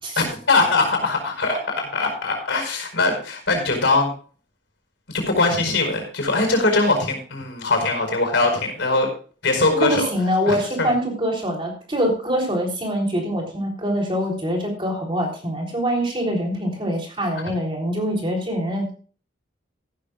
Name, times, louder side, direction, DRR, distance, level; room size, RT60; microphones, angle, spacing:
voice 1, 0.2-4.1 5.1-9.1 9.4-10.1 10.5-10.9, left 3 dB, 65° left, 4 dB, 5.0 m, -21 dB
voice 2, 9.7-18.9, equal, 25° right, 0 dB, 3.5 m, -24 dB
15.0 x 13.0 x 2.4 m, 0.39 s
head